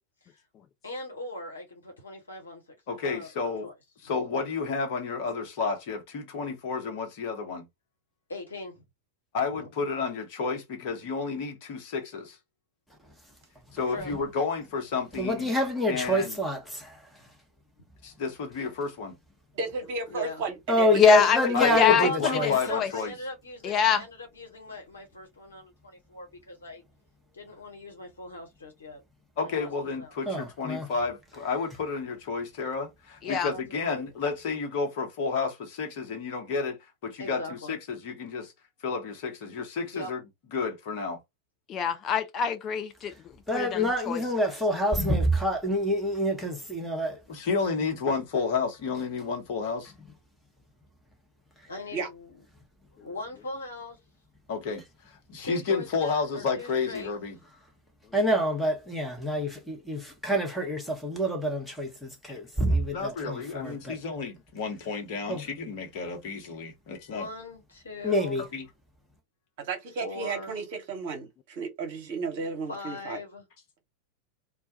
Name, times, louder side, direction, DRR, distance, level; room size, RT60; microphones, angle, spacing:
voice 1, 0.8-2.8 3.0-3.7 8.3-8.8 9.5-9.7 13.9-14.1 20.1-20.4 21.7-26.8 27.3-29.0 29.4-30.2 33.2-34.1 37.2-37.8 39.9-40.1 51.7-52.4 52.9-54.0 55.4-57.1 67.1-68.4 70.0-70.5 72.7-73.4, left 2 dB, 75° left, 1.0 m, -39 dB
voice 2, 2.9-3.7 4.0-7.7 9.3-12.4 13.7-15.5 15.9-16.4 18.0-19.1 21.5-23.1 29.4-38.5 38.8-40.2 40.5-41.2 47.3-49.9 54.5-54.8 55.3-57.4 62.3-62.4 62.9-67.3 68.5-68.7, left 5 dB, 45° left, 0.9 m, -31 dB
voice 3, 15.2-17.0 20.7-22.5 30.3-30.9 43.5-47.2 58.1-64.0 65.3-65.4 68.0-68.4, left 1 dB, ahead, 0.9 m, -26 dB
voice 4, 19.5-21.5 51.9-52.1 69.6-73.2, right 4 dB, 45° right, 1.0 m, -34 dB
voice 5, 20.9-22.1 22.7-22.9 23.6-24.0 33.2-33.5 41.7-43.1 43.5-44.2, left 8 dB, 30° left, 0.4 m, -25 dB
2.2 x 2.2 x 2.7 m
figure-of-eight pair, 90°, 0 cm